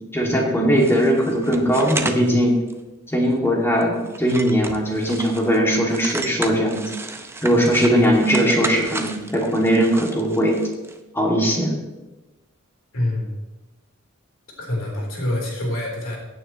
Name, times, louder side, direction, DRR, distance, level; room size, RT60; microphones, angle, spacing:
voice 1, 0.0-2.6 3.1-6.8 7.4-10.6 11.1-11.7, equal, 10° left, -2 dB, 2.4 m, -19 dB
sound 1, 0.8-2.3 2.7-2.8 3.3-3.5 3.8-5.6 5.9-11.0, right 2 dB, 10° right, 0.7 m, -33 dB
voice 2, 12.9-13.3 14.6-16.2, left 1 dB, 70° left, -1 dB, 3.9 m, -26 dB
16.5 x 9.3 x 3.1 m, 1.1 s
head